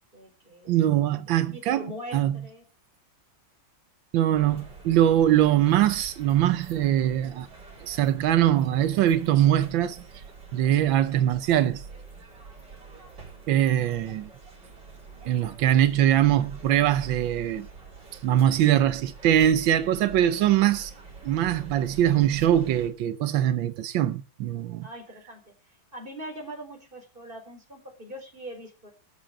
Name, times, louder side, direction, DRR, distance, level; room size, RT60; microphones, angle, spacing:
voice 1, 0.1-0.7 1.3-2.6 24.8-25.5 25.9-28.9, equal, 25° right, 4.4 m, -42 dB
voice 2, 0.7-2.4 4.1-7.5 7.8-10.0 10.5-11.8 13.5-14.3 15.2-17.7 18.2-20.9 21.2-24.9, right 11 dB, 90° right, 1.5 m, -22 dB
sound 1, 4.3-22.9, right 4 dB, 65° right, 4.8 m, -45 dB
13.5 x 7.4 x 6.5 m
omnidirectional pair, 2.0 m